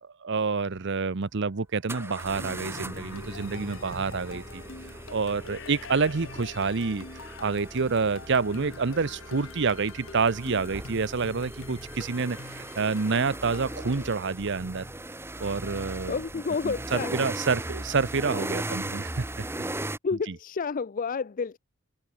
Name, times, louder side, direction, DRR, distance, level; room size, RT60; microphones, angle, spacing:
voice 1, 0.0-4.6 4.9-14.9 15.4-16.2 16.6-19.5 19.8-19.9 20.2-20.4, right 4 dB, 60° right, 0.8 m, -28 dB
sound 1, 0.7-0.8 1.9-20.0, right 1 dB, 10° right, 1.6 m, -38 dB
sound 2, 2.0-14.3, left 3 dB, 90° left, 1.9 m, -47 dB
sound 3, 2.1-12.0, left 3 dB, 65° left, 1.8 m, -48 dB
voice 2, 16.1-17.2 20.0-21.6, left 5 dB, 40° left, 0.5 m, -30 dB
head